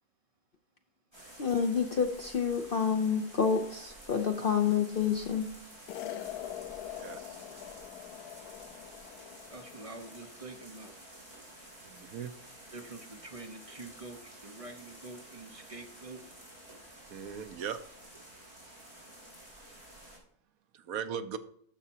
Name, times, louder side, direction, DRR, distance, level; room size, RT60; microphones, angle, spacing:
sound 1, 1.1-20.2, right 1 dB, 15° right, 3.4 m, -51 dB
voice 1, 1.4-5.5, left 6 dB, 55° left, 5 dB, 0.6 m, -28 dB
sound 2, 5.9-10.3, left 12 dB, 85° left, 1.1 m, -43 dB
voice 2, 6.9-7.4 11.9-12.3 17.1-17.8 18.1-18.2 20.7-21.4, right 8 dB, 70° right, 10 dB, 1.1 m, -38 dB
voice 3, 9.5-10.9 12.7-16.2, right 2 dB, 35° right, 5 dB, 0.6 m, -46 dB
11.5 x 7.0 x 2.8 m, 0.67 s
omnidirectional pair, 1.6 m